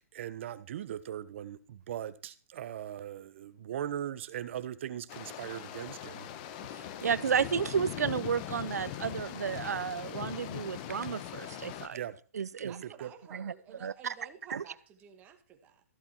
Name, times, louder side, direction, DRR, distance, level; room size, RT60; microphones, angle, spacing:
voice 1, 0.1-6.3 11.9-12.2 12.6-13.1, right 10 dB, 50° right, 1.2 m, -39 dB
sound 1, 5.1-11.9, left 11 dB, 35° left, 1.2 m, -41 dB
voice 2, 6.7-12.0 12.3-12.8 13.3-13.5 13.8-14.1 14.5-14.6, right 7 dB, 80° right, 0.7 m, -32 dB
voice 3, 12.7-15.8, right 7 dB, 20° right, 2.0 m, -52 dB
14.5 x 8.2 x 4.6 m
hypercardioid pair, 150°, 8 cm